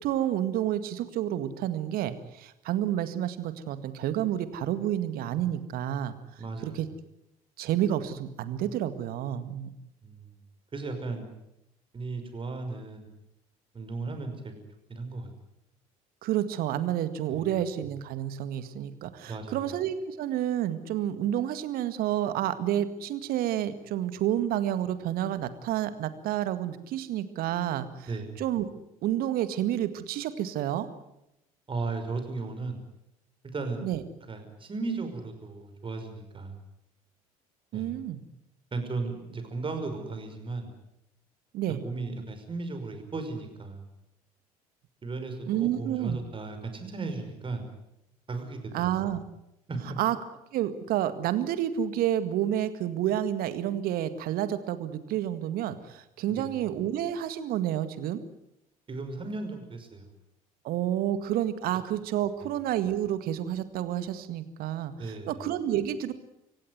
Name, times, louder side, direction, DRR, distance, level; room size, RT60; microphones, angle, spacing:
voice 1, 0.0-6.1 6.6-6.9 7.6-9.7 16.2-28.1 28.4-28.7 29.0-30.9 33.8-34.0 37.7-38.2 41.5-41.8 45.5-46.2 48.7-49.2 50.0-50.2 50.5-58.2 60.6-66.1, right 11 dB, 55° right, 12 dB, 1.9 m, -29 dB
voice 2, 6.4-6.8 10.0-10.4 10.7-11.3 11.9-13.1 13.7-14.5 14.9-15.3 17.3-17.4 19.3-19.6 28.1-28.3 31.7-32.8 33.5-33.9 34.3-36.6 37.7-37.9 38.7-40.7 41.7-43.8 45.0-47.6 48.3-49.2 49.7-49.8 56.3-56.6 58.9-60.1 65.0-65.4, right 3 dB, 30° right, 6 dB, 5.7 m, -35 dB
26.0 x 16.5 x 9.6 m, 0.85 s
figure-of-eight pair, 60°, 19 cm